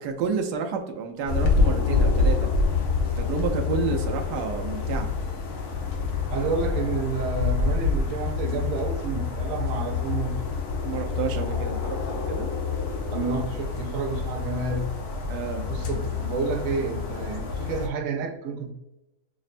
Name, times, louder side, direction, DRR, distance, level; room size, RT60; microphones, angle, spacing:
voice 1, 0.0-2.5 3.0-5.1 10.8-12.5 15.3-15.7, right 5 dB, 90° right, 1.2 m, -30 dB
sound 1, 1.3-17.9, left 4 dB, 75° left, 1.2 m, -27 dB
voice 2, 6.3-10.4 13.1-15.0 15.7-18.7, right 4 dB, 70° right, 0.9 m, -30 dB
6.1 x 2.1 x 2.4 m
omnidirectional pair, 1.7 m